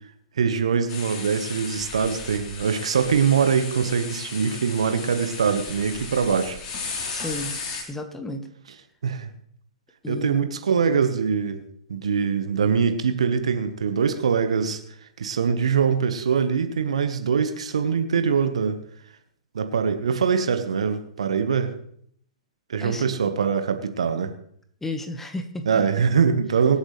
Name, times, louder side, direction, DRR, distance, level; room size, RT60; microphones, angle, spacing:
voice 1, 0.4-6.6 9.0-9.3 10.1-11.6 11.9-14.8 15.2-18.8 19.5-21.7 22.7-24.3 25.6-26.8, right 6 dB, 70° right, 8 dB, 1.4 m, -23 dB
sound 1, 0.9-7.8, left 4 dB, 35° left, 3.8 m, -35 dB
voice 2, 7.1-7.6 7.9-8.5 10.0-10.5 22.8-23.0 24.8-25.7, left 2 dB, 10° left, 7 dB, 1.4 m, -32 dB
24.0 x 8.1 x 3.3 m, 0.67 s
figure-of-eight pair, 110°, 3 cm